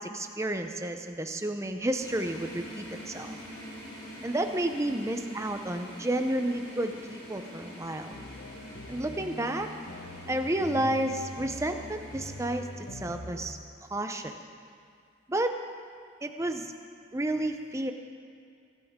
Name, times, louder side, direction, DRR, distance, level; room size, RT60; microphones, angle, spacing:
voice 1, 0.0-3.4 4.2-8.1 8.9-9.7 10.3-13.6 13.9-14.3 15.3-15.5 16.2-16.7 17.1-17.9, right 1 dB, 15° right, 6 dB, 0.7 m, -31 dB
sound 1, 2.0-13.3, equal, 20° left, 3.2 m, -45 dB
sound 2, 8.1-13.5, left 1 dB, 65° left, 1.4 m, -43 dB
22.5 x 12.0 x 3.7 m, 2.3 s
head